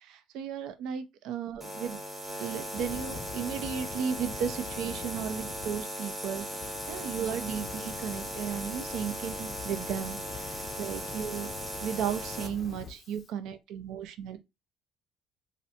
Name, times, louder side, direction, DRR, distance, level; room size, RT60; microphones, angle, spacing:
voice 1, 0.0-2.0 2.4-11.5 11.8-14.4, right 8 dB, 75° right, 0.4 m, -35 dB
sound 1, 1.6-12.5, equal, 15° right, 0.9 m, -38 dB
Fire, 2.7-5.8 6.3-13.3, left 6 dB, 40° left, 0.4 m, -45 dB
3.1 x 2.6 x 2.7 m
cardioid pair, 125°, 0 cm